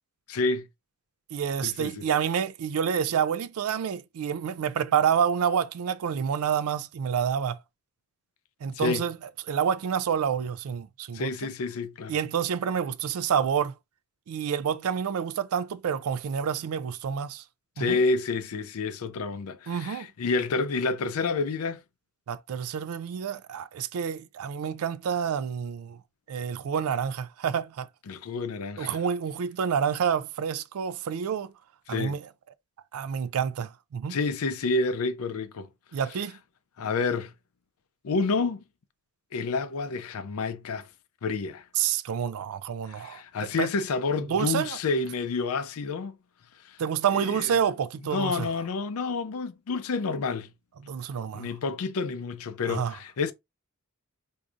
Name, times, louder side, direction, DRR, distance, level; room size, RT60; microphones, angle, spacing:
voice 1, 0.3-0.7 1.6-2.0 8.7-9.1 11.1-12.2 17.8-21.8 28.1-29.0 31.9-32.2 34.1-35.7 36.8-37.3 38.0-38.6 39.3-40.9 41.2-41.6 42.9-46.2 46.6-46.8 47.1-47.5 48.1-50.5 51.3-53.3, left 4 dB, 70° left, 0.5 m, -29 dB
voice 2, 1.3-7.6 8.6-9.2 9.5-11.3 12.1-13.7 14.3-17.4 17.8-18.0 19.7-20.1 22.3-26.0 26.3-27.9 28.8-31.5 31.9-32.3 32.9-34.2 35.9-36.4 41.8-43.2 43.6-43.7 44.3-44.8 46.8-48.5 50.9-51.5 52.7-52.9, right 7 dB, 75° right, 0.3 m, -28 dB
4.7 x 2.7 x 2.4 m
head